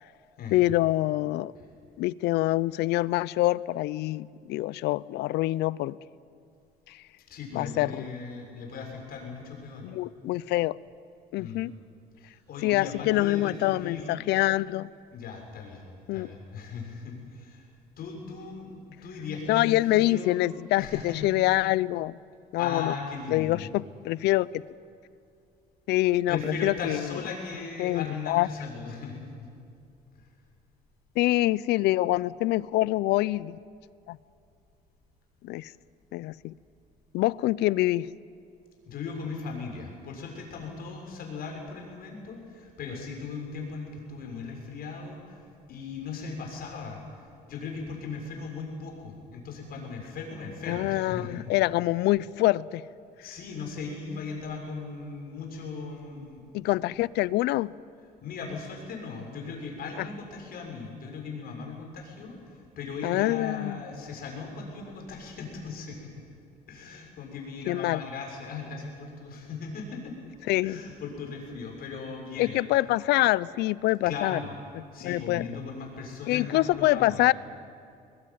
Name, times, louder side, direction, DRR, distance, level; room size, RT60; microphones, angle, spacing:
voice 1, 0.5-1.5 2.0-6.0 6.9-7.0 7.5-8.1 9.8-10.8 11.3-11.7 12.6-14.9 16.1-16.3 19.5-22.2 22.5-22.9 23.3-24.6 25.9-27.1 27.8-28.5 31.2-33.6 34.1-34.2 35.4-35.7 36.1-36.5 37.1-38.1 50.7-52.8 56.5-57.7 60.0-60.1 63.0-63.8 67.7-68.0 70.5-70.8 72.4-74.4 75.0-75.4 76.3-77.3, left 17 dB, 80° left, 21 dB, 0.6 m, -25 dB
voice 2, 7.3-9.9 11.4-11.7 12.2-14.3 15.1-17.7 18.0-20.4 20.8-21.3 22.6-23.7 26.3-29.5 30.1-30.2 38.8-51.4 53.2-56.9 58.2-66.0 66.7-70.1 70.6-72.6 74.0-74.6 74.9-77.3, left 4 dB, 65° left, 1 dB, 6.7 m, -38 dB
21.5 x 21.0 x 9.5 m, 2.5 s
cardioid pair, 110°, 17 cm